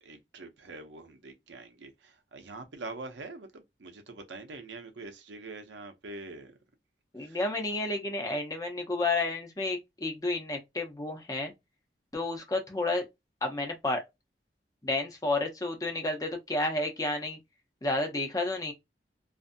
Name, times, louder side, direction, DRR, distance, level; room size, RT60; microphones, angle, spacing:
voice 1, 0.0-6.5 7.2-7.4, right 3 dB, 85° right, 0.6 m, -44 dB
voice 2, 7.1-11.5 12.1-13.1 13.4-14.0 14.8-17.4 17.8-18.7, left 2 dB, 20° left, 0.6 m, -31 dB
2.6 x 2.5 x 2.5 m
head